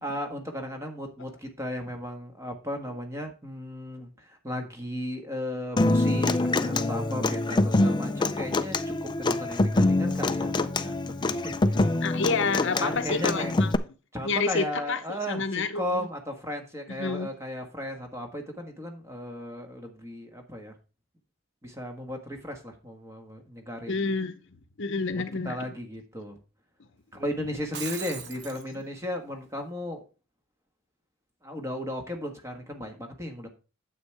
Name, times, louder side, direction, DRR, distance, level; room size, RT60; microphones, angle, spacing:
voice 1, 0.0-11.9 12.8-13.5 14.1-20.7 21.6-24.1 25.1-26.4 27.1-30.0 31.4-33.5, left 1 dB, 15° right, 1.5 m, -35 dB
Human voice / Acoustic guitar, 5.8-13.8, left 2 dB, 20° left, 0.4 m, -25 dB
voice 2, 12.0-13.8 14.2-16.1 16.9-17.3 23.9-24.3 24.8-25.6, left 4 dB, 60° left, 0.7 m, -29 dB
Shatter, 27.5-28.6, right 7 dB, 50° right, 0.9 m, -38 dB
9.4 x 7.6 x 3.4 m
head